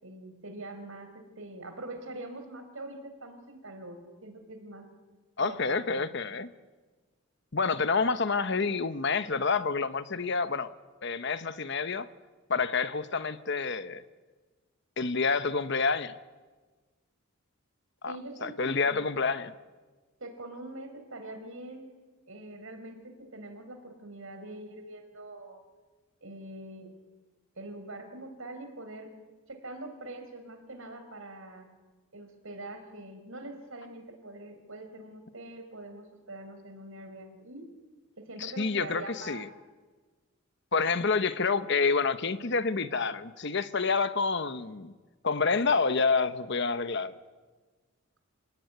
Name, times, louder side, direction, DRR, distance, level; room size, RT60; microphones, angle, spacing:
voice 1, 0.0-4.9 5.4-6.0 18.1-19.1 20.2-21.9 22.3-25.6 26.2-26.9 27.6-29.1 29.5-31.7 32.1-37.7 38.2-39.4, right 2 dB, 70° right, 4.4 m, -44 dB
voice 2, 5.4-6.5 7.5-10.7 11.0-12.1 12.5-14.0 15.0-16.2 18.0-19.5 38.4-39.5 40.7-44.9 45.2-47.2, left 4 dB, 55° left, 1.0 m, -28 dB
27.5 x 17.0 x 9.5 m
head